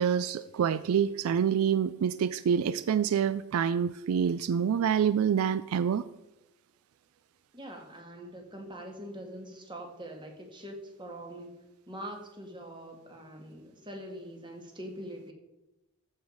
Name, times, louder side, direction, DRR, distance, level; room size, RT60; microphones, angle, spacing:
voice 1, 0.0-6.1, right 7 dB, 70° right, 15 dB, 0.3 m, -27 dB
voice 2, 7.5-15.3, right 1 dB, 20° right, 3 dB, 1.8 m, -43 dB
14.0 x 4.9 x 5.4 m, 0.95 s
head